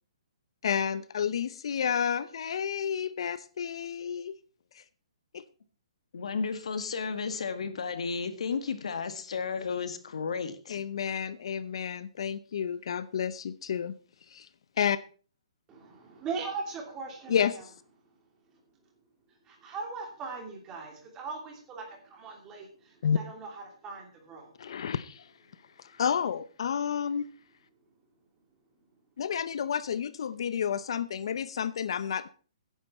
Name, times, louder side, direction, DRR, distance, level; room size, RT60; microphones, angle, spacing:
voice 1, 0.6-4.3 4.7-4.8 5.3-5.4 10.7-13.9 14.3-14.5 14.8-15.0 17.3-17.6 23.0-23.2 24.6-25.3 25.8-27.3 29.2-32.3, left 8 dB, 55° left, 0.7 m, -30 dB
voice 2, 6.1-10.8, left 5 dB, 70° left, 1.9 m, -33 dB
voice 3, 15.7-17.6 19.5-24.5, right 4 dB, 15° right, 2.8 m, -40 dB
13.0 x 10.0 x 4.3 m
hypercardioid pair, 170°, 3 cm